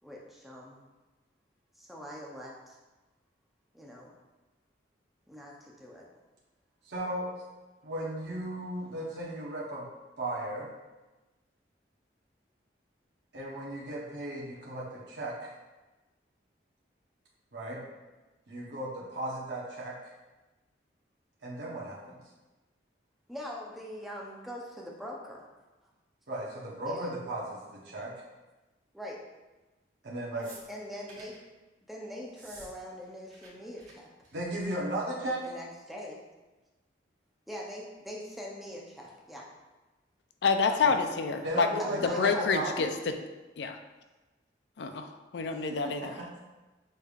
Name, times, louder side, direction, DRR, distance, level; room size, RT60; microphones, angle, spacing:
voice 1, 0.0-0.8 1.8-2.8 3.7-4.1 5.3-6.1 23.3-25.4 26.9-27.2 28.9-29.2 30.7-31.5 31.9-34.1 35.2-36.2 37.5-39.5 40.7-40.8 41.8-42.5, equal, ahead, -3 dB, 0.6 m, -42 dB
voice 2, 6.9-7.4 7.8-9.9 10.2-10.7 13.3-15.5 17.5-17.8 18.5-20.0 21.4-22.2 26.3-28.1 30.0-30.5 34.3-35.4 40.8-41.0 41.4-42.9 45.5-46.4, right 1 dB, 70° right, -5 dB, 0.9 m, -36 dB
sound 1, 30.4-31.4 32.3-32.7 33.0-33.5 33.8-33.9 34.2-34.5 35.5-35.6, right 2 dB, 45° right, 1.3 m, -51 dB
voice 3, 40.4-41.7 42.0-42.9 43.6-43.8 44.8-46.1, left 5 dB, 70° left, 7 dB, 0.4 m, -28 dB
6.5 x 3.3 x 2.4 m, 1.2 s
head